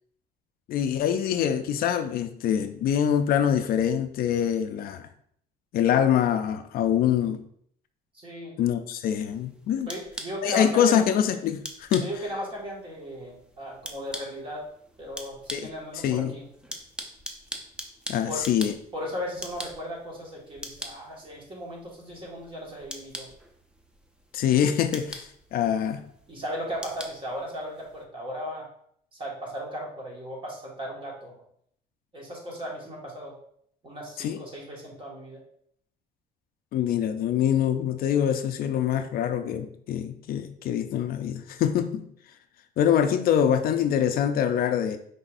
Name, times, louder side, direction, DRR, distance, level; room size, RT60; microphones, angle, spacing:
voice 1, 0.7-5.1 5.7-7.4 8.6-9.9 10.4-12.1 15.5-15.7 16.0-16.3 18.1-18.7 24.3-26.0 34.2-34.4 36.7-42.1 42.8-45.0, left 9 dB, 60° left, 9 dB, 0.4 m, -24 dB
voice 2, 8.1-8.6 9.9-11.0 12.0-14.7 15.0-16.5 18.3-18.4 18.9-23.3 26.3-28.7 29.1-31.4 32.1-33.4 33.8-35.4, equal, 30° right, -2 dB, 1.6 m, -36 dB
sound 1, 9.3-28.0, equal, 5° right, 0.6 m, -43 dB
5.4 x 3.3 x 2.5 m, 0.66 s
cardioid pair, 110°, 17 cm